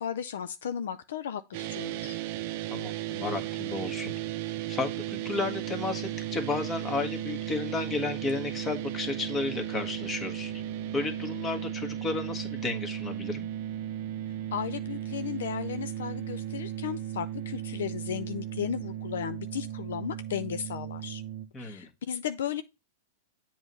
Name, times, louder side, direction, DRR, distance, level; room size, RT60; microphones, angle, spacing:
voice 1, 0.0-2.2 14.5-21.2 21.6-22.6, left 9 dB, 75° left, 0.4 m, -35 dB
sound 1, 1.5-21.5, right 12 dB, 55° right, 0.6 m, -35 dB
voice 2, 2.7-4.1 4.7-10.6 10.9-13.5 21.5-21.9, left 3 dB, 25° left, 1.4 m, -33 dB
7.9 x 3.1 x 5.3 m
hypercardioid pair, 110°, 0 cm